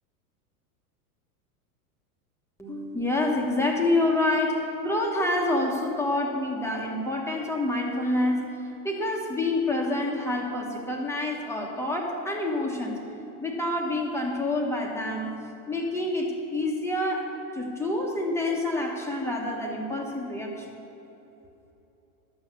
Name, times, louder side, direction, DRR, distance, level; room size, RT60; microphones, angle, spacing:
voice 1, 2.6-13.0 13.4-15.3 15.7-20.7, left 2 dB, 5° left, -1 dB, 1.1 m, -27 dB
12.0 x 7.2 x 6.9 m, 3.0 s
supercardioid pair, 135°, 44 cm